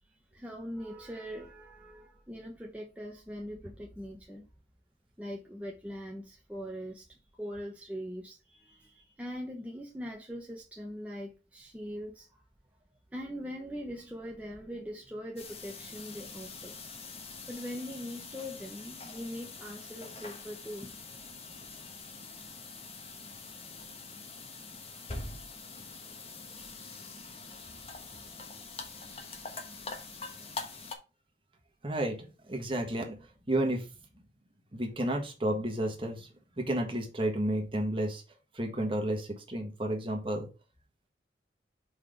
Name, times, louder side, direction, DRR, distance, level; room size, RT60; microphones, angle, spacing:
voice 1, 0.3-4.4 5.2-12.3 13.1-16.8 17.5-22.0, equal, 10° right, 0.9 m, -42 dB
sound 1, 15.4-30.9, left 3 dB, 30° left, 1.2 m, -44 dB
voice 2, 31.8-33.9 34.7-36.3 36.6-38.2 38.5-40.5, right 1 dB, 30° right, 1.3 m, -32 dB
5.2 x 4.1 x 5.0 m
head